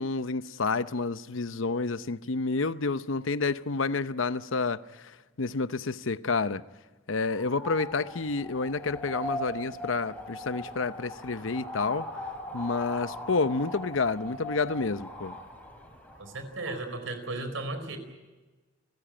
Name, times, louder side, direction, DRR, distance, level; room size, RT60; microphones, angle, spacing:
voice 1, 0.0-5.1 5.4-6.6 7.1-12.1 12.5-15.4, left 4 dB, 80° left, 0.8 m, -29 dB
sound 1, 7.1-16.9, equal, 10° left, 4.2 m, -40 dB
voice 2, 16.2-18.0, right 2 dB, 90° right, 4.4 m, -35 dB
29.0 x 15.5 x 8.8 m
head